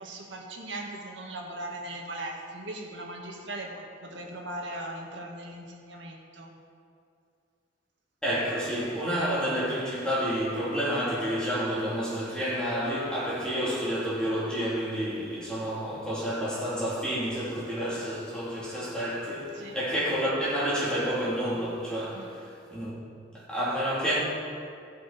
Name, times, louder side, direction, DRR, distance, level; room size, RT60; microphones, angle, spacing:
voice 1, 0.0-6.5 19.5-19.8 22.1-22.3, right 1 dB, 70° right, 1.8 m, -39 dB
voice 2, 8.2-23.0 23.3-24.2, equal, 5° left, 3.3 m, -29 dB
16.0 x 7.6 x 4.3 m
head